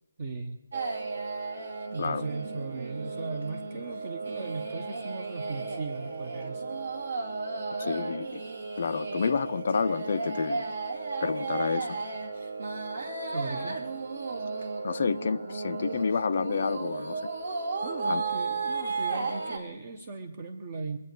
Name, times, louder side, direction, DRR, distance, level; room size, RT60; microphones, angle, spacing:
voice 1, 0.2-0.6 1.9-6.6 13.3-13.8 17.8-21.0, right 4 dB, 35° right, 5 dB, 1.3 m, -38 dB
sound 1, 0.7-19.6, right 4 dB, 55° right, 2.3 m, -34 dB
voice 2, 7.8-8.4 8.8-10.7 11.2-12.0 14.8-17.2 18.0-18.2, left 5 dB, 45° left, 9 dB, 0.5 m, -29 dB
25.0 x 8.4 x 5.2 m, 0.93 s
figure-of-eight pair, 145°, 0 cm